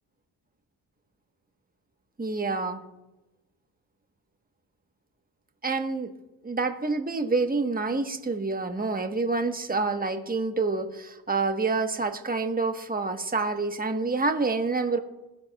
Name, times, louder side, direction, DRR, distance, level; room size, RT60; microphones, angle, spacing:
voice 1, 2.2-2.8 5.6-6.1 6.4-15.0, right 3 dB, 15° right, 6 dB, 1.2 m, -27 dB
21.0 x 7.8 x 2.3 m, 1.0 s
supercardioid pair, 50°, 50 cm